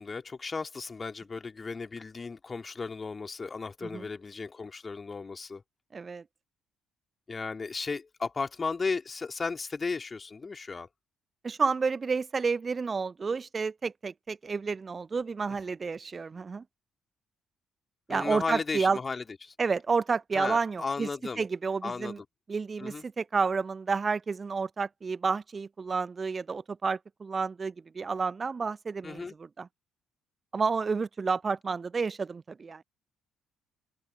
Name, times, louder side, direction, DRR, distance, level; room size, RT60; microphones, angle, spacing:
voice 1, 0.0-5.6 7.3-10.9 18.1-19.5 20.3-21.4 21.8-22.2 22.8-23.0 29.0-29.3, left 4 dB, 30° left, 2.8 m, -35 dB
voice 2, 5.9-6.2 11.4-16.6 18.1-19.0 19.6-21.1 21.4-22.2 22.5-29.7 30.5-32.8, right 4 dB, 30° right, 0.8 m, -30 dB
open air
figure-of-eight pair, 45°, 0 cm